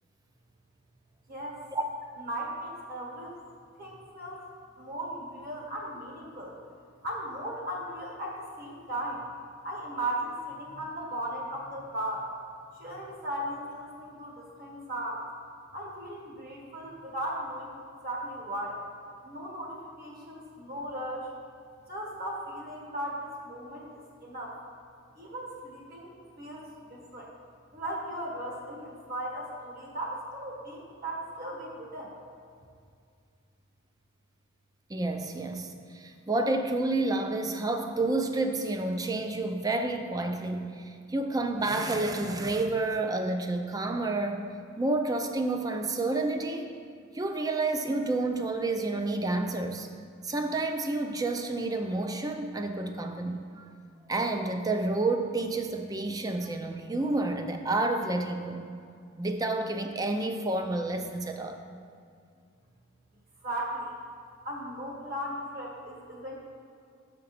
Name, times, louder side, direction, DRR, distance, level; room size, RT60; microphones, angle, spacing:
voice 1, 1.3-1.6 2.2-3.3 3.8-4.5 4.8-6.6 7.0-9.2 9.6-12.3 12.8-15.2 15.7-17.7 18.0-18.8 19.2-21.3 21.9-23.9 24.2-24.6 25.1-27.3 27.7-32.1 63.4-63.9 64.4-66.4, right 1 dB, 50° right, -2 dB, 1.6 m, -37 dB
voice 2, 34.9-44.5 44.8-46.8 47.1-49.9 50.2-53.7 54.1-58.6 59.2-61.6, right 2 dB, 20° right, 5 dB, 0.5 m, -29 dB
6.8 x 5.1 x 5.8 m, 2.3 s
head